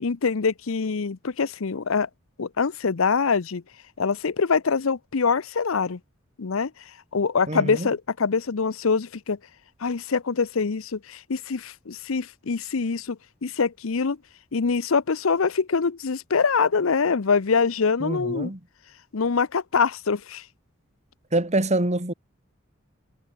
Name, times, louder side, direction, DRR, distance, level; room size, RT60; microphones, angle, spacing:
voice 1, 0.0-2.1 2.4-3.6 4.0-6.0 6.4-6.7 7.1-9.4 9.8-14.2 14.5-18.5 19.1-20.4, left 5 dB, 75° left, 0.7 m, -24 dB
voice 2, 7.5-7.9 18.0-18.6 21.3-22.1, right 2 dB, 35° right, 3.4 m, -25 dB
head